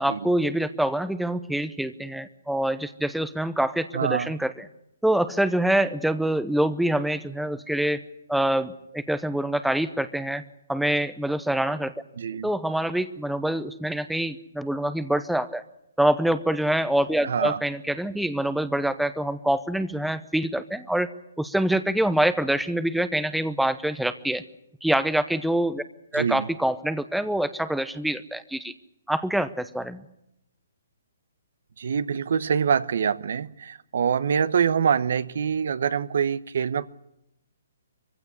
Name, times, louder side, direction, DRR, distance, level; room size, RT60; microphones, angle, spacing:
voice 1, 0.0-4.6 5.0-8.0 8.3-10.4 10.7-11.9 12.4-15.6 16.0-21.1 21.4-24.4 24.8-25.8 26.1-28.7 29.1-30.0, right 1 dB, ahead, 12 dB, 0.8 m, -25 dB
voice 2, 3.9-4.3 12.2-12.5 17.2-17.6 26.1-26.5 31.8-36.9, right 7 dB, 65° right, 16 dB, 1.0 m, -25 dB
23.0 x 16.0 x 9.7 m, 0.82 s
hypercardioid pair, 145°, 0 cm